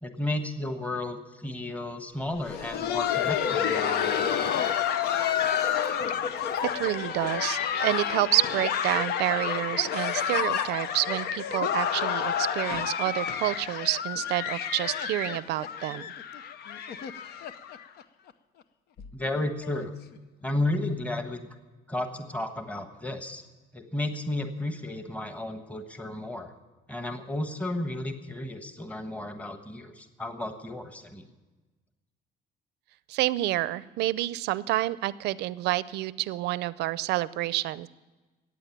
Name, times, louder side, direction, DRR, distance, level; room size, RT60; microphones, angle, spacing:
voice 1, 0.0-4.5 19.1-19.9 20.4-21.4 21.9-23.4 23.7-26.5 26.9-31.2, left 1 dB, 10° left, 7 dB, 1.3 m, -33 dB
Laughter, 2.3-18.0 18.3-18.4 19.0-19.1 19.6-19.8 20.9-21.0, left 8 dB, 70° left, 0.8 m, -29 dB
voice 2, 6.6-16.1 33.1-37.9, right 16 dB, 80° right, 18 dB, 0.5 m, -28 dB
14.5 x 9.2 x 9.0 m, 1.2 s
cardioid pair, 110°, 17 cm